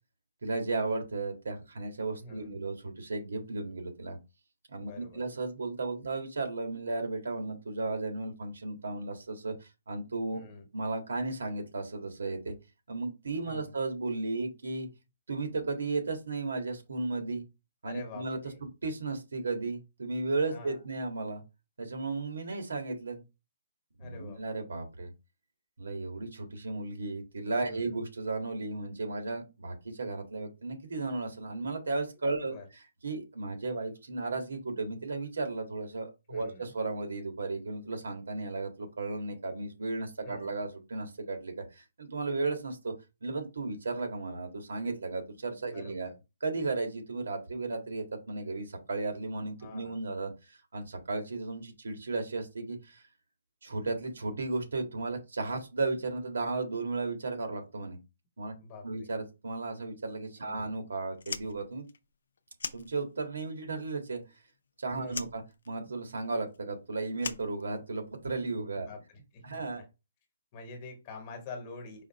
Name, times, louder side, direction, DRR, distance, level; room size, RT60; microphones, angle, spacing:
voice 1, 0.4-4.2 4.7-10.4 10.7-12.5 12.9-14.9 15.3-17.4 17.8-21.4 21.8-23.2 24.0-25.1 25.8-32.5 33.0-42.9 43.2-46.1 46.4-53.1 53.6-58.0 58.4-58.5 58.8-61.9 62.7-64.2 64.8-68.9 69.4-69.8, right 3 dB, 85° right, 4 dB, 1.7 m, -35 dB
voice 2, 2.1-2.6 4.8-5.3 10.3-10.7 13.4-13.7 17.8-18.6 20.5-20.8 24.0-24.4 27.6-28.0 32.3-32.7 36.3-36.7 40.2-40.5 45.6-46.1 49.6-50.0 58.6-59.1 60.4-60.7 64.9-65.3 68.8-69.8 70.5-72.1, left 3 dB, 20° left, 3 dB, 1.1 m, -46 dB
Fire, 61.1-63.5 63.7-64.7 65.1-68.2, left 5 dB, 65° left, 0.5 m, -41 dB
4.9 x 2.6 x 4.2 m, 0.26 s
hypercardioid pair, 175°, 0 cm